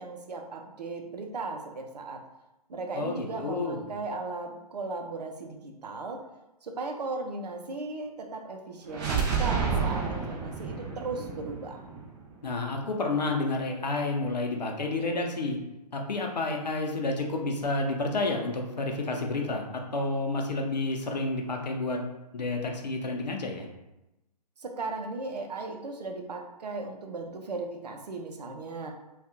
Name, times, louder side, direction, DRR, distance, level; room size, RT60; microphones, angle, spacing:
voice 1, 0.0-2.2 2.7-6.2 6.6-11.9 24.6-28.9, right 3 dB, 70° right, 3 dB, 0.6 m, -37 dB
voice 2, 2.9-3.8 12.4-15.6 15.9-22.1 22.3-23.7, left 2 dB, 80° left, 2 dB, 0.7 m, -30 dB
sound 1, 8.9-12.8, right 5 dB, 30° right, 0.6 m, -30 dB
2.7 x 2.4 x 3.5 m, 0.94 s
figure-of-eight pair, 125°, 21 cm